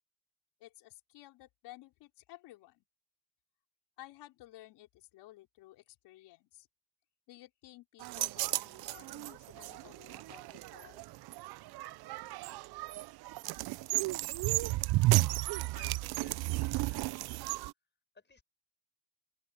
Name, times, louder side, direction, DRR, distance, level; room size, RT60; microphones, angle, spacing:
voice 1, 0.6-2.9 4.0-6.7 7.3-11.0, left 17 dB, 90° left, 4.9 m, -55 dB
sound 1, 8.0-17.7, right 19 dB, 70° right, 0.6 m, -33 dB
voice 2, 15.7-17.5 18.1-18.4, left 4 dB, 25° left, 7.5 m, -60 dB
open air
cardioid pair, 85°, 39 cm